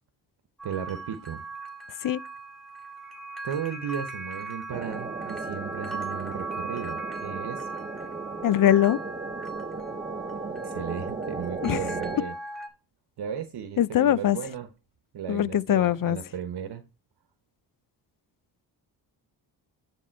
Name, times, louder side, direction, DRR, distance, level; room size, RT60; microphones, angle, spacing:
sound 1, 0.6-12.7, right 3 dB, ahead, 1.9 m, -39 dB
voice 1, 0.6-1.4 3.4-7.6 10.5-12.4 13.2-14.7 15.1-16.8, right 8 dB, 65° right, 1.1 m, -35 dB
sound 2, 4.7-12.2, right 4 dB, 20° right, 0.6 m, -36 dB
voice 2, 8.4-9.0 11.6-11.8 13.8-14.4 15.3-16.2, left 11 dB, 50° left, 0.5 m, -22 dB
10.0 x 3.6 x 4.5 m
cardioid pair, 80°, 43 cm